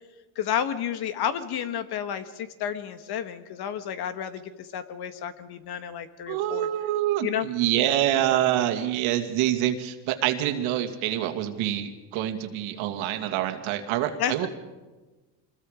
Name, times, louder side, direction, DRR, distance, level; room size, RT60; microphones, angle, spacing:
voice 1, 0.3-6.7 7.2-7.5 14.2-14.5, left 9 dB, 50° left, 11 dB, 1.6 m, -31 dB
voice 2, 6.3-14.5, right 12 dB, 70° right, 7 dB, 2.3 m, -26 dB
25.5 x 21.0 x 5.1 m, 1.2 s
supercardioid pair, 115°, 49 cm